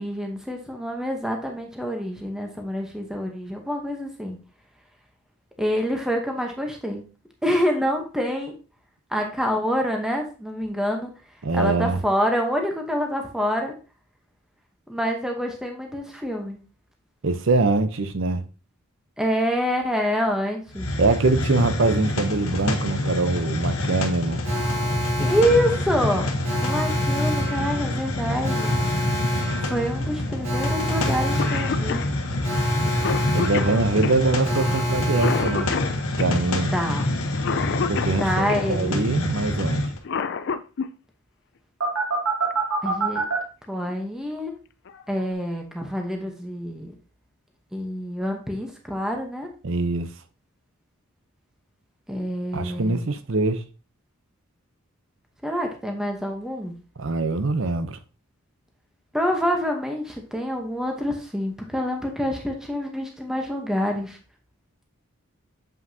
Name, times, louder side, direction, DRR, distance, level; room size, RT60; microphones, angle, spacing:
voice 1, 0.0-4.4 5.6-7.0 7.4-8.5 9.1-11.1 11.5-13.7 14.9-16.6 19.2-20.9 25.2-26.3 26.6-28.7 29.7-32.1 36.7-37.1 38.2-39.0 42.8-43.2 43.7-44.5 45.1-46.9 47.7-49.5 52.1-53.0 55.4-56.7 59.1-64.2, equal, 5° right, 0.8 m, -26 dB
voice 2, 11.4-12.0 17.2-18.4 21.0-24.4 33.3-35.7 36.2-36.7 37.9-39.9 49.6-50.1 52.5-53.6 57.0-58.0, right 3 dB, 60° right, 0.6 m, -23 dB
Hiss, 20.7-40.0, left 1 dB, 75° left, 1.0 m, -27 dB
Alarm, 24.4-36.3 41.8-43.4, right 1 dB, 80° right, 2.4 m, -28 dB
Cough, 31.1-31.2 31.4-38.7 39.8-40.9 42.5-42.6 43.6-43.9 44.4-44.5 44.9-45.3, left 5 dB, 55° left, 0.4 m, -29 dB
7.4 x 5.4 x 2.7 m
head